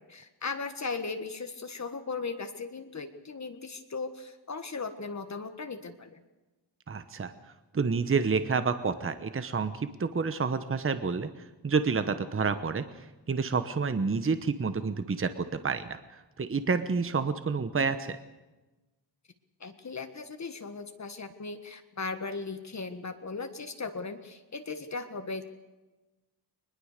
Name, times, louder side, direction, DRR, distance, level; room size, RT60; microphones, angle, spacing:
voice 1, 0.0-6.2 19.6-25.4, left 4 dB, 40° left, 7 dB, 1.6 m, -37 dB
voice 2, 6.9-7.3 7.7-11.3 11.6-12.8 13.3-18.2, right 5 dB, 30° right, 11 dB, 1.1 m, -29 dB
23.0 x 21.0 x 6.7 m, 1.1 s
wide cardioid pair, 135°, 42 cm